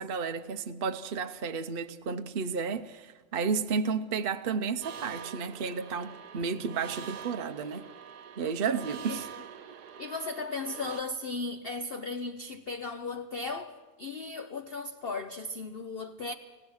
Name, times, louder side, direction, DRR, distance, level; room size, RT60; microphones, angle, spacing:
voice 1, 0.0-7.8 8.4-9.3, right 5 dB, 50° right, 0.7 m, -32 dB
sound 1, 4.8-11.0, right 7 dB, 85° right, 1.6 m, -45 dB
voice 2, 10.0-16.3, left 3 dB, 45° left, 0.8 m, -36 dB
27.5 x 17.0 x 6.4 m
omnidirectional pair, 1.7 m